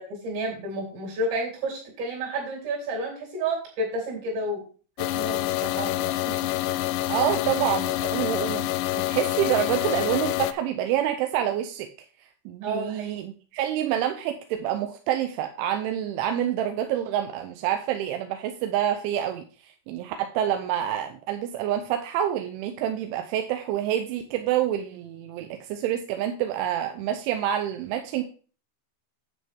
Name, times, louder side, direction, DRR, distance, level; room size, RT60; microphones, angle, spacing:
voice 1, 0.1-4.6 5.0-6.4 6.7-6.8 12.6-13.1, right 1 dB, 65° right, -1 dB, 5.5 m, -31 dB
sound 1, 5.0-10.5, left 16 dB, 90° left, 2.5 m, -27 dB
voice 2, 7.1-11.9 12.5-28.2, right 11 dB, 80° right, 6 dB, 2.9 m, -27 dB
9.4 x 7.6 x 3.5 m, 0.39 s
omnidirectional pair, 5.8 m